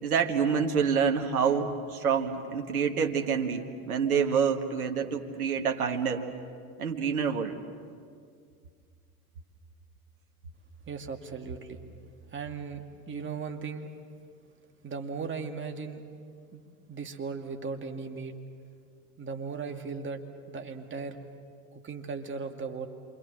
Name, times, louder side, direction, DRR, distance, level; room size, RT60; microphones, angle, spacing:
voice 1, 0.0-6.2 6.8-7.6, right 6 dB, 85° right, 4 dB, 1.8 m, -27 dB
voice 2, 10.9-11.8 12.3-13.9 14.8-16.1 16.5-16.6 16.9-18.4 19.2-21.2 21.7-22.9, right 5 dB, 25° right, 4 dB, 2.5 m, -37 dB
28.0 x 25.5 x 7.6 m, 2.2 s
hypercardioid pair, 80°, 43 cm